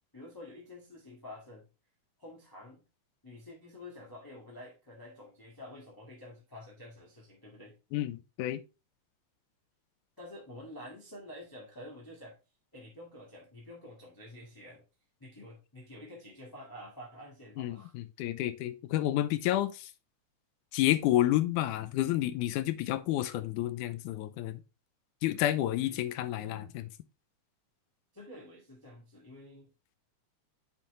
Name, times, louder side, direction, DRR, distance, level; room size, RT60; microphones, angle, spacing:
voice 1, 0.1-1.7 2.2-2.8 3.2-7.7 10.2-12.4 12.7-14.8 15.2-17.9 25.7-26.8 28.1-29.7, left 1 dB, 10° left, 1.2 m, -49 dB
voice 2, 7.9-8.6 17.6-19.9 20.7-24.6 25.2-26.8, left 14 dB, 90° left, 2.1 m, -30 dB
7.4 x 5.3 x 3.1 m
omnidirectional pair, 3.4 m